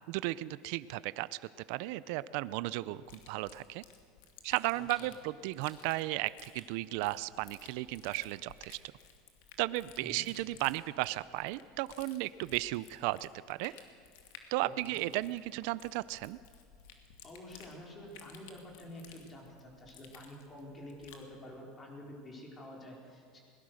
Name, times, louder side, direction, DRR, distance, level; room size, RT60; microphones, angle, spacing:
voice 1, 0.1-1.3 1.7-3.8 4.4-8.8 9.6-13.7 14.5-16.4, right 18 dB, 65° right, 17 dB, 0.5 m, -35 dB
sound 1, 3.0-21.3, left 7 dB, 80° left, 2.4 m, -56 dB
voice 2, 4.7-5.1 10.0-10.2 14.6-15.0 17.2-23.4, left 1 dB, 20° left, 0 dB, 4.5 m, -49 dB
21.5 x 19.0 x 6.5 m, 2.3 s
supercardioid pair, 145°, 0 cm